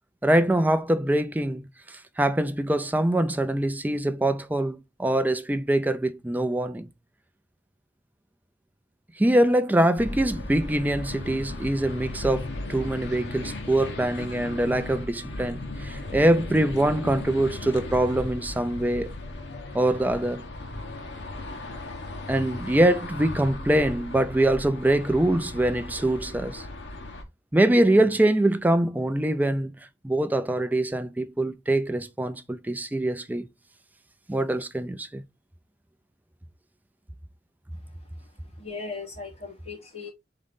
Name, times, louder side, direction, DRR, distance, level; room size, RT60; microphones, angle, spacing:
voice 1, 0.2-6.9 9.2-19.1 19.7-20.4 22.3-26.6 27.5-29.7 30.0-33.5 34.3-35.2, right 1 dB, 10° right, 0.4 m, -24 dB
sound 1, 10.0-27.2, left 2 dB, 70° left, 1.0 m, -36 dB
voice 2, 38.6-40.1, left 4 dB, 35° left, 2.7 m, -38 dB
3.8 x 3.8 x 3.5 m
head